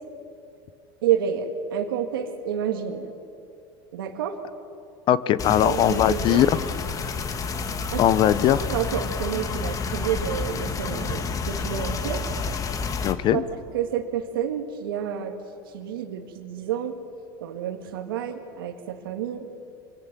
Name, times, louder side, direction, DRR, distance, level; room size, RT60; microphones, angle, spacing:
voice 1, 1.0-3.1 3.9-4.4 5.6-6.5 7.9-8.0 8.7-12.2 13.3-13.4 13.7-15.4 15.7-16.9 17.4-19.5, right 9 dB, 90° right, 6 dB, 2.0 m, -29 dB
voice 2, 5.1-6.5 8.0-8.7 13.0-13.4, left 11 dB, 45° left, 16 dB, 1.0 m, -20 dB
sound 1, 5.4-13.1, left 4 dB, 30° left, 1.9 m, -30 dB
26.5 x 24.0 x 7.5 m, 2.6 s
supercardioid pair, 115°, 11 cm